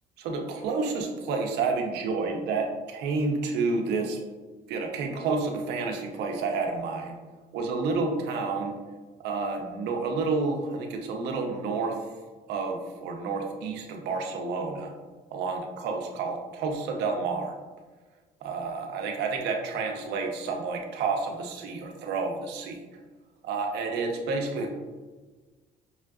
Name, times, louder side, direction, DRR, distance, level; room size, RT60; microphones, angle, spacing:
voice 1, 0.2-4.2 4.7-7.2 7.5-8.7 9.2-12.1 12.5-14.9 15.3-17.5 18.4-22.8 23.4-24.8, right 4 dB, 80° right, 2 dB, 0.7 m, -30 dB
5.6 x 2.4 x 2.3 m, 1.3 s
cardioid pair, 110°, 17 cm